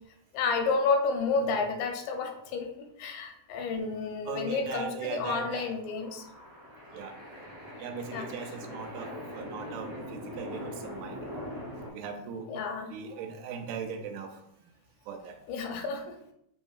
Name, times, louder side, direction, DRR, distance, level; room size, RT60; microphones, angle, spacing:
voice 1, 0.3-6.2 8.1-8.3 12.5-12.9 15.5-16.2, left 4 dB, 85° left, 4 dB, 2.2 m, -30 dB
voice 2, 4.3-5.8 6.9-7.2 7.8-11.2 11.9-12.5 12.9-14.4 15.1-15.4, right 5 dB, 80° right, 4 dB, 1.9 m, -39 dB
sound 1, 5.5-11.9, left 1 dB, 35° right, 1.2 m, -42 dB
5.7 x 2.7 x 2.4 m, 0.75 s
omnidirectional pair, 3.7 m